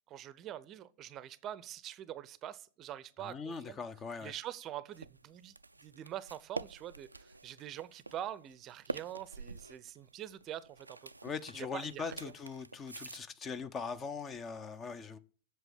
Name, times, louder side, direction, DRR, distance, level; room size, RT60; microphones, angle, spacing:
voice 1, 0.1-3.8 4.2-5.5 5.8-11.1 11.5-12.3, right 11 dB, 35° right, 0.6 m, -45 dB
voice 2, 3.2-4.3 11.2-15.2, left 5 dB, 25° left, 0.8 m, -41 dB
sound 1, 4.9-13.2, right 3 dB, 85° right, 0.4 m, -46 dB
7.9 x 6.9 x 8.4 m
figure-of-eight pair, 95°, 0 cm